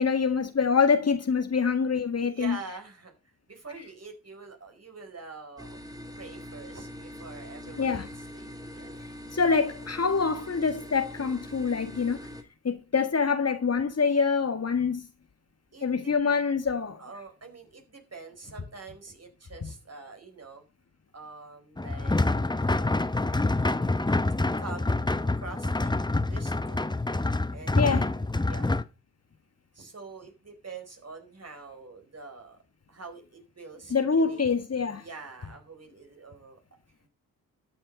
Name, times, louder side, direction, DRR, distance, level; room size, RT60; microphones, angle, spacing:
voice 1, 0.0-2.6 7.8-8.1 9.3-12.2 12.6-15.1 15.8-17.0 27.8-28.1 33.9-35.0, left 5 dB, 40° left, 1.8 m, -25 dB
voice 2, 2.2-5.8 6.2-8.9 15.7-16.1 17.0-20.6 21.1-23.0 24.6-25.0 25.3-25.9 26.2-26.9 27.5-28.8 29.7-32.6 32.9-34.4 34.9-36.6, right 3 dB, 40° right, 4.7 m, -45 dB
sound 1, 5.6-12.4, left 1 dB, 10° right, 3.0 m, -43 dB
sound 2, 21.8-28.8, left 2 dB, 10° left, 0.9 m, -26 dB
12.5 x 7.8 x 5.3 m
supercardioid pair, 45°, 37 cm